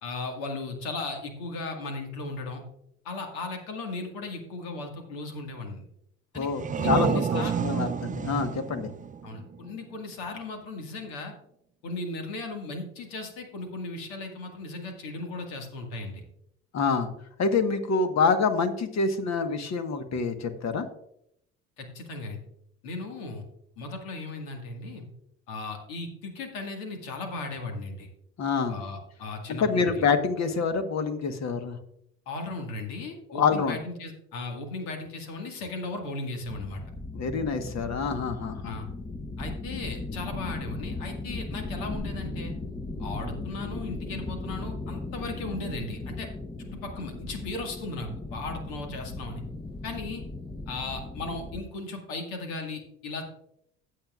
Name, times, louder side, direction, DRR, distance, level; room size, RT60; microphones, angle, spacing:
voice 1, 0.0-2.6 3.0-5.8 6.3-6.5 6.8-7.5 9.2-11.3 11.8-16.2 21.8-22.4 22.8-23.4 23.8-25.0 25.5-28.1 28.7-30.1 32.3-36.8 38.6-38.9 39.4-42.5 43.0-46.3 46.6-49.4 49.8-50.2 50.7-53.2, left 3 dB, 70° left, 4 dB, 2.1 m, -36 dB
voice 2, 6.3-8.9 16.7-17.1 17.4-20.8 28.4-28.8 29.5-31.8 33.3-33.8 37.1-38.7, left 5 dB, 45° left, 9 dB, 1.4 m, -26 dB
sound 1, 6.3-9.9, right 7 dB, 20° right, 0.5 m, -30 dB
sound 2, 36.4-51.6, left 2 dB, 15° left, 0.9 m, -37 dB
15.5 x 7.7 x 2.5 m, 0.75 s
hypercardioid pair, 60°, 37 cm